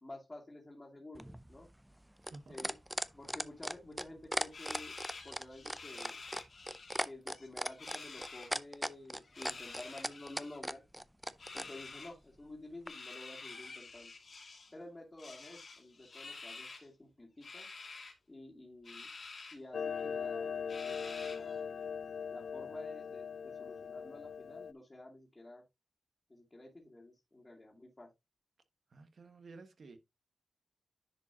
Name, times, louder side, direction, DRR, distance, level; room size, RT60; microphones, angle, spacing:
voice 1, 0.0-1.7 2.5-2.8 3.1-4.9 5.2-6.2 7.0-10.8 11.5-14.1 14.7-17.7 18.3-19.1 19.5-20.5 20.8-21.7 22.3-25.6 26.3-28.1, left 2 dB, 20° left, 2.3 m, -51 dB
sound 1, 1.1-11.7 12.9-13.0, equal, 5° right, 0.4 m, -37 dB
voice 2, 2.3-2.7 28.9-30.0, right 3 dB, 55° right, 1.2 m, -53 dB
sound 2, 4.5-7.0 7.3-8.5 9.2-10.6 11.4-12.1 12.9-14.7 15.2-16.9 17.4-18.1 18.8-19.6 20.0-20.1 20.7-21.6, left 4 dB, 50° left, 2.3 m, -49 dB
Clock, 19.7-24.7, left 6 dB, 85° left, 0.3 m, -40 dB
10.5 x 5.0 x 2.8 m
wide cardioid pair, 155°, 0 cm